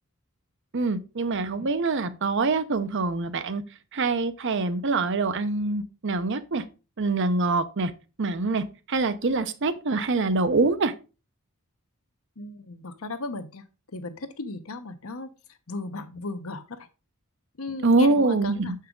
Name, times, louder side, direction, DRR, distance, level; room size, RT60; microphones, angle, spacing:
voice 1, 0.7-3.6 3.9-6.6 7.0-7.9 8.2-10.9 17.8-18.7, right 3 dB, 55° right, 0.7 m, -24 dB
voice 2, 12.4-15.3 15.7-16.9 17.6-18.7, left 3 dB, 70° left, 0.9 m, -36 dB
7.0 x 5.5 x 3.7 m
head